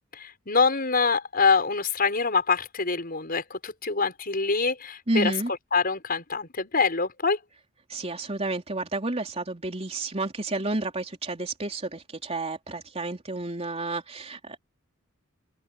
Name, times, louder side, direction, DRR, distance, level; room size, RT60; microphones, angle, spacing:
voice 1, 0.1-5.3 5.7-7.4, left 4 dB, 45° left, 5.7 m, -25 dB
voice 2, 5.1-5.5 7.9-14.6, right 2 dB, 30° right, 3.8 m, -30 dB
head